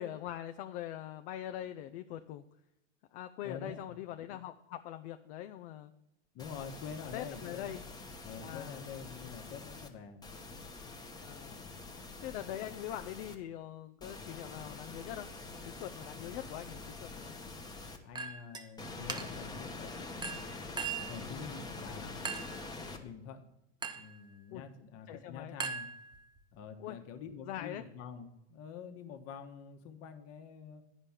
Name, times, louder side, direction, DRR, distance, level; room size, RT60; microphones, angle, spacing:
voice 1, 0.0-2.4 3.1-5.9 7.1-7.8 8.4-9.0 11.2-11.6 12.2-15.3 15.6-17.3 24.5-24.6 25.1-25.5 26.8-27.0 27.4-27.8, left 12 dB, 60° left, 7 dB, 0.6 m, -42 dB
voice 2, 3.4-4.0 6.3-7.8 8.2-10.2 11.4-11.8 16.1-16.3 18.0-20.5 21.1-22.2 22.7-23.5 23.9-25.9 26.5-30.8, left 6 dB, 40° left, 6 dB, 1.4 m, -47 dB
sound 1, 6.4-9.9 10.2-13.4 14.0-18.0 18.8-23.0, left 3 dB, 10° left, 1.0 m, -46 dB
Chink clink, 18.1-18.7 19.1-19.5 20.2-21.2 22.2-22.6 23.8-24.2 25.6-26.4, right 5 dB, 15° right, 0.6 m, -39 dB
10.0 x 5.2 x 7.3 m, 0.89 s
supercardioid pair, 120°, 35 cm